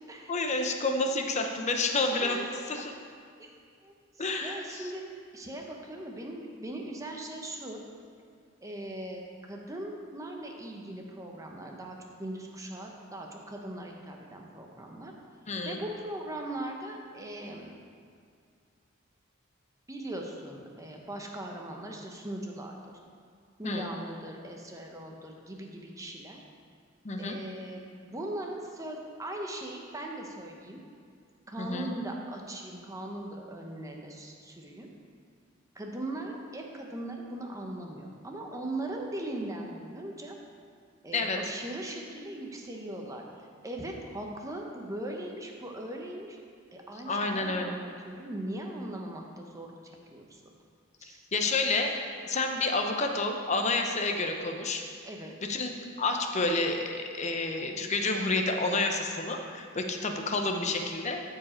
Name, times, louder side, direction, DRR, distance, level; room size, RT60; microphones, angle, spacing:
voice 1, 0.3-2.4 2.7-2.9 4.2-4.8 15.5-15.8 23.6-23.9 27.0-27.4 31.6-31.9 41.1-41.4 47.1-47.8 51.3-54.8 55.4-55.7 56.0-61.2, left 3 dB, 35° left, 4 dB, 0.7 m, -29 dB
voice 2, 2.1-2.9 3.4-3.5 3.8-5.0 5.3-7.8 8.6-9.2 9.5-15.1 15.6-17.7 19.9-23.0 23.6-26.4 27.2-30.8 31.5-34.9 35.7-40.4 41.0-43.2 43.6-46.4 46.7-49.7 50.1-50.5 51.0-51.2 55.0-55.3, right 1 dB, 15° right, 1 dB, 0.9 m, -39 dB
13.5 x 4.8 x 4.4 m, 2.2 s
head